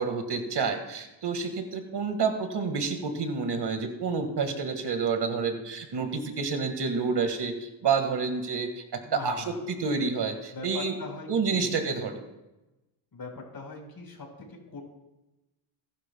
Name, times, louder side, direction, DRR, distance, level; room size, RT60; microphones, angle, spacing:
voice 1, 0.0-10.9 11.3-12.2, right 5 dB, 55° right, 6 dB, 1.8 m, -29 dB
voice 2, 9.0-9.7 10.5-11.8 13.1-14.8, left 3 dB, 45° left, 2 dB, 4.4 m, -41 dB
19.0 x 11.5 x 2.3 m, 0.99 s
cardioid pair, 70°, 49 cm